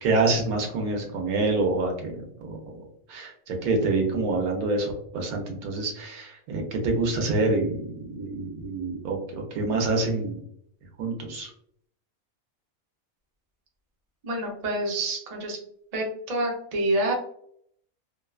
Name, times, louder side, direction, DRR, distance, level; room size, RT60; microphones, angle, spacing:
voice 1, 0.0-2.1 2.5-2.6 3.1-10.4 11.0-11.5, right 3 dB, 80° right, 2 dB, 1.2 m, -26 dB
voice 2, 14.2-15.6 15.9-17.1, right 1 dB, 45° right, -1 dB, 0.5 m, -27 dB
3.0 x 2.2 x 2.3 m, 0.66 s
omnidirectional pair, 1.6 m